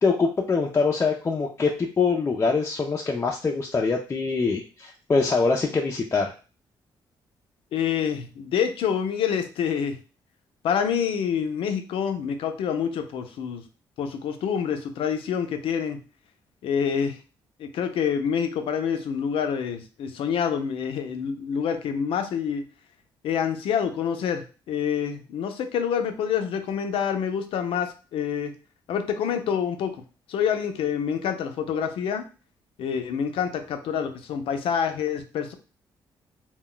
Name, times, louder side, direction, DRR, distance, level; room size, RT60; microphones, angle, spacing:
voice 1, 0.0-6.3, left 4 dB, 30° left, 0 dB, 0.4 m, -24 dB
voice 2, 7.7-10.0 10.6-13.6 14.0-16.0 16.6-17.2 17.6-22.6 23.2-28.5 28.9-30.0 30.3-32.2 32.8-35.5, left 7 dB, 80° left, 7 dB, 0.5 m, -27 dB
2.2 x 2.2 x 3.8 m, 0.35 s
cardioid pair, 85°, 9 cm